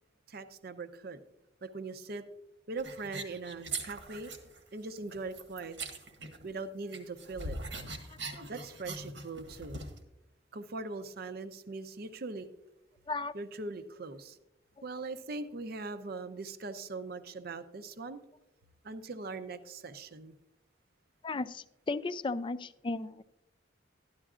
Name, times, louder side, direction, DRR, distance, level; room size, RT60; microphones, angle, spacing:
voice 1, 0.3-1.2 1.6-2.2 2.7-4.3 4.7-5.8 6.4-7.6 8.5-9.8 10.5-12.5 13.3-14.4 14.8-18.2 18.8-20.3, right 3 dB, 55° right, 10 dB, 0.6 m, -41 dB
sound 1, 2.8-4.6 4.9-6.6 6.9-10.0, right 3 dB, 80° right, 1.4 m, -42 dB
voice 2, 21.2-23.2, left 3 dB, 25° left, 13 dB, 0.3 m, -35 dB
12.5 x 11.0 x 2.4 m, 0.89 s
head